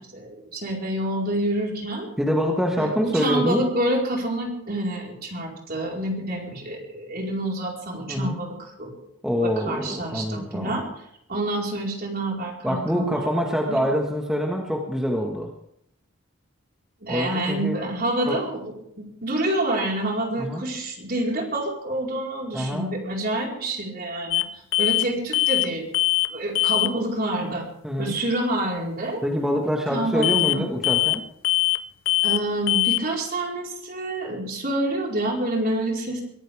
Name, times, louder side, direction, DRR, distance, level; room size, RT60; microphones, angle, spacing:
voice 1, 0.0-2.1 2.8-8.9 9.4-11.0 11.3-13.3 13.7-13.8 17.0-25.9 26.3-27.7 28.0-29.2 29.9-30.6 32.2-36.2, right 1 dB, 45° right, -1 dB, 4.7 m, -27 dB
voice 2, 2.2-3.6 8.1-8.4 9.2-10.8 12.6-15.5 17.1-17.8 18.3-18.4 20.4-20.6 22.5-22.9 27.8-28.1 29.2-31.2, equal, ahead, -1 dB, 1.6 m, -25 dB
sound 1, 24.3-24.5 24.7-25.1 25.3-25.7 25.9-26.3 26.5-26.9 30.2-30.6 30.8-31.2 31.4-31.8 32.1-32.4 32.7-33.0, left 17 dB, 65° left, 0.5 m, -21 dB
23.0 x 14.5 x 3.6 m, 0.73 s
head